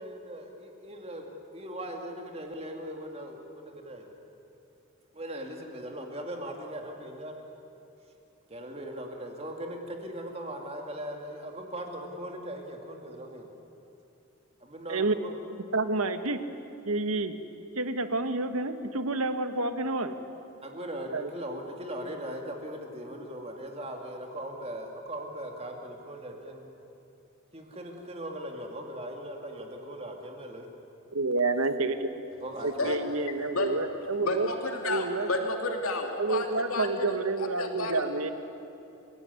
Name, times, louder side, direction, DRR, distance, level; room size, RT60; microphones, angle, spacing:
voice 1, 0.0-4.1 5.1-7.4 8.5-13.5 14.6-15.3 20.6-26.7 27.5-30.7 32.4-32.9, right 1 dB, 30° right, 2 dB, 2.5 m, -39 dB
voice 2, 15.7-16.4 16.8-17.4 17.7-20.1 21.1-21.3 31.1-32.1 32.6-34.5 34.8-35.3 36.2-38.3, right 3 dB, 85° right, 9 dB, 1.5 m, -29 dB
voice 3, 34.2-38.0, left 2 dB, 85° left, 3 dB, 2.7 m, -31 dB
29.5 x 17.0 x 9.6 m, 2.9 s
head